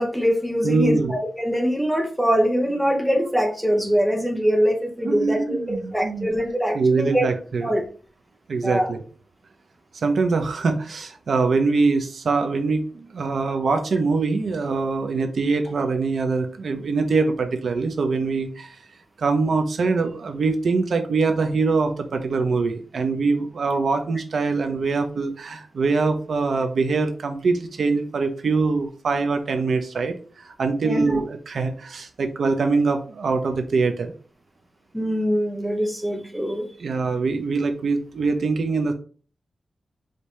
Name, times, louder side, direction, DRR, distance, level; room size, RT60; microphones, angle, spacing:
voice 1, 0.0-7.3 7.6-7.8 8.6-8.9 30.8-31.2 34.9-36.7, equal, ahead, 1 dB, 0.7 m, -23 dB
voice 2, 0.6-1.2 5.0-6.3 6.7-7.7 8.5-9.0 9.9-18.8 19.2-34.1 36.8-38.9, right 4 dB, 65° right, 6 dB, 0.6 m, -23 dB
5.0 x 2.8 x 3.1 m, 0.40 s
wide cardioid pair, 170°, 0 cm